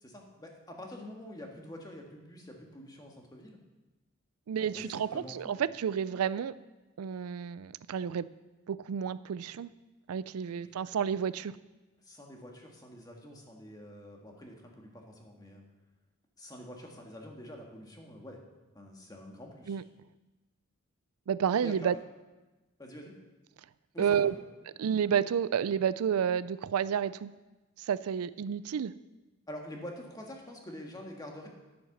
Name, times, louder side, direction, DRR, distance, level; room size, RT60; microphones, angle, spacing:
voice 1, 0.0-3.6 4.6-5.6 10.4-10.8 12.0-15.6 16.4-18.4 18.7-19.8 21.5-21.9 22.8-23.1 23.9-24.3 29.5-31.5, left 1 dB, 15° left, 1 dB, 1.7 m, -46 dB
voice 2, 4.5-6.5 7.0-8.3 8.7-9.7 10.1-11.5 19.7-19.8 21.3-21.9 24.0-24.3 24.8-27.3 27.9-28.9, right 8 dB, 90° right, 17 dB, 0.4 m, -30 dB
10.5 x 8.8 x 6.6 m, 1.1 s
head